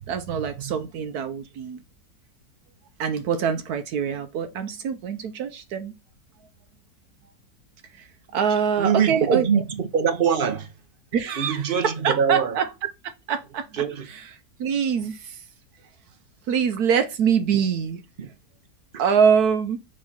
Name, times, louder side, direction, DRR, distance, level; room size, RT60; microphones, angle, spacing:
voice 1, 0.1-1.8 3.0-5.9 7.9-9.4 11.1-12.7 13.3-13.8 14.1-14.2 14.6-15.4 16.5-18.0 19.0-19.8, right 7 dB, 75° right, 1.2 m, -24 dB
voice 2, 8.8-10.7 11.4-12.6 13.7-14.1 18.2-18.3 18.9-19.0, right 6 dB, 45° right, 0.7 m, -23 dB
6.4 x 3.1 x 5.8 m
omnidirectional pair, 1.7 m